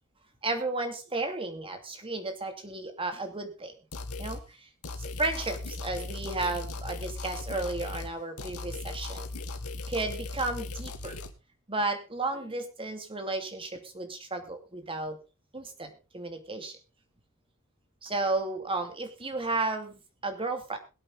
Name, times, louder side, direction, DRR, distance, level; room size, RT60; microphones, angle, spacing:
voice 1, 0.4-3.7 4.2-4.6 5.0-9.3 9.9-11.2 11.7-15.2 15.5-16.8 18.0-20.8, right 2 dB, 25° right, 6 dB, 2.6 m, -33 dB
sound 1, 3.9-4.4 4.8-8.1 8.4-11.3, left 3 dB, 90° left, 2.0 m, -38 dB
22.5 x 8.5 x 3.9 m, 0.32 s
head